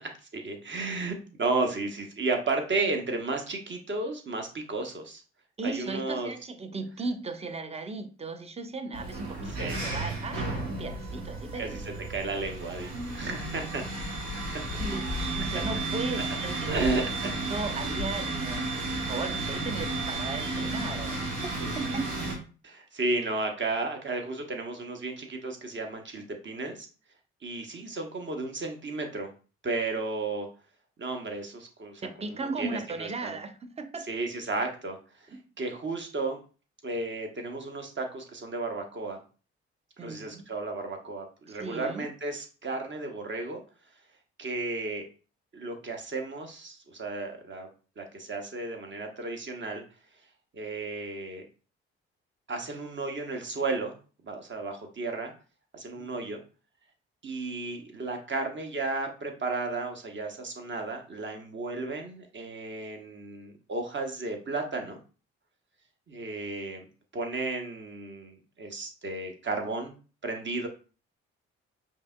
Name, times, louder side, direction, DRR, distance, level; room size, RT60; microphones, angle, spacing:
voice 1, 0.0-5.2 5.6-6.3 9.5-9.8 11.6-13.8 14.9-15.0 15.5-15.6 16.7-17.3 22.6-26.9 27.4-29.3 29.6-30.5 31.0-33.3 34.1-35.0 35.6-36.4 36.8-39.2 40.0-43.6 44.4-45.1 45.5-47.7 48.0-49.8 50.5-51.5 52.5-54.0 54.2-55.3 55.7-56.4 57.2-65.0 66.1-66.9 67.1-69.9 70.2-70.7, right 3 dB, 35° right, 1.0 m, -33 dB
voice 2, 5.6-11.8 13.3-13.4 14.8-16.8 17.5-22.1 32.0-34.1 35.3-35.4 40.0-40.4 41.5-42.1 56.0-56.1, right 3 dB, 20° right, 0.6 m, -36 dB
sound 1, 8.9-22.3, right 3 dB, 85° right, 0.9 m, -33 dB
sound 2, 13.9-18.2 18.5-18.9, left 6 dB, 30° left, 0.4 m, -39 dB
5.1 x 2.9 x 2.2 m
hypercardioid pair, 45°, 32 cm